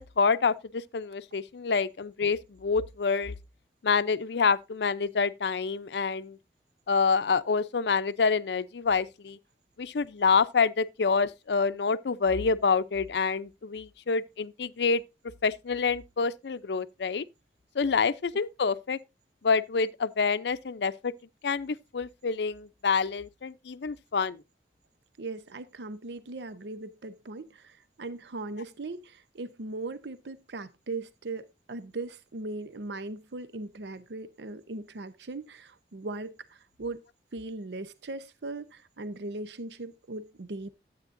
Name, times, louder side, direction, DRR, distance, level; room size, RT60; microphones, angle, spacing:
voice 1, 0.0-3.3 3.8-6.4 6.9-9.4 9.8-15.0 15.4-17.2 17.8-19.0 19.4-21.1 21.4-24.4, left 5 dB, 80° left, 0.5 m, -27 dB
voice 2, 25.2-37.0 37.3-40.7, right 2 dB, 80° right, 0.7 m, -39 dB
12.5 x 8.4 x 2.5 m
head